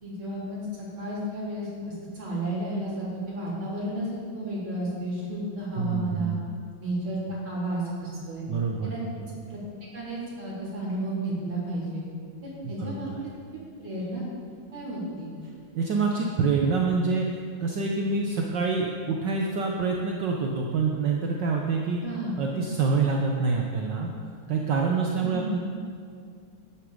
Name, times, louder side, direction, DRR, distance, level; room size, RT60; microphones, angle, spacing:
voice 1, 0.0-1.7 2.1-6.3 6.8-7.2 7.4-8.4 8.8-9.0 9.5-9.6 9.9-12.0 12.4-13.1 13.8-14.2 14.7-15.3 22.0-22.4 25.2-25.6, right 1 dB, 85° right, -8 dB, 4.5 m, -32 dB
voice 2, 5.8-6.4 8.5-9.3 12.6-13.3 15.7-22.0 22.4-24.1 24.5-25.6, right 4 dB, 65° right, 0 dB, 1.5 m, -26 dB
13.0 x 10.0 x 5.1 m, 2.2 s
omnidirectional pair, 2.3 m